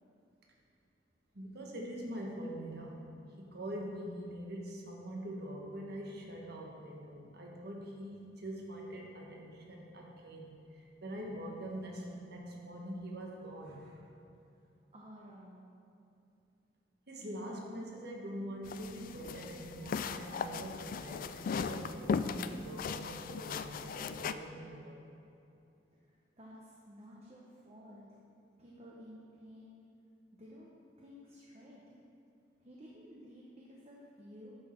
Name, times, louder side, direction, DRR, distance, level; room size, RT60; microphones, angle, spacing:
voice 1, 1.3-3.0 3.4-14.1 17.1-25.2, right 1 dB, 60° right, -1 dB, 1.4 m, -44 dB
voice 2, 14.9-15.7 26.4-28.2 28.6-29.8 30.4-30.7 31.0-31.8 32.6-34.5, equal, 35° right, -4 dB, 1.0 m, -53 dB
sound 1, 18.7-24.3, left 5 dB, 50° left, 0.3 m, -38 dB
10.5 x 6.4 x 4.5 m, 2.7 s
head